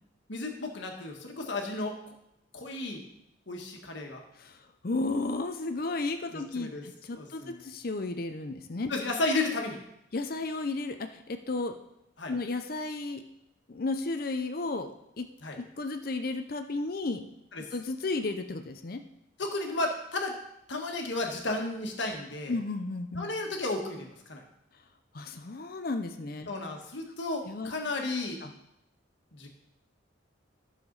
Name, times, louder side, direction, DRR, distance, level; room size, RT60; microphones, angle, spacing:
voice 1, 0.3-2.1 2.5-3.0 3.5-4.2 6.3-6.8 7.1-7.7 8.9-9.8 12.2-12.3 15.4-15.6 17.5-17.7 19.4-20.4 20.7-22.6 23.2-24.4 26.5-28.4 29.3-29.5, left 2 dB, 65° left, 2 dB, 1.5 m, -33 dB
voice 2, 4.8-8.9 10.1-11.8 12.3-13.2 13.7-15.3 15.6-17.3 17.7-19.0 22.5-23.3 25.1-26.5 27.4-27.7 28.4-28.5, left 3 dB, 50° left, 7 dB, 0.6 m, -33 dB
11.5 x 6.7 x 4.0 m, 0.81 s
head